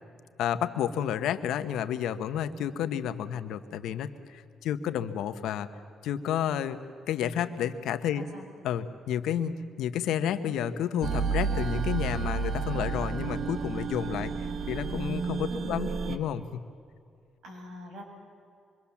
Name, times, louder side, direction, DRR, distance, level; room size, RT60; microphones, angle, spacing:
voice 1, 0.4-5.7 6.0-6.8 7.1-8.3 8.6-14.3 14.7-16.4, left 9 dB, 85° left, 10 dB, 1.2 m, -31 dB
sound 1, 11.0-16.2, right 5 dB, 50° right, 1.0 m, -31 dB
voice 2, 15.5-16.2 17.4-18.0, left 1 dB, 75° right, 1 dB, 6.6 m, -43 dB
25.5 x 24.0 x 7.2 m, 2.4 s
cardioid pair, 90°, 0 cm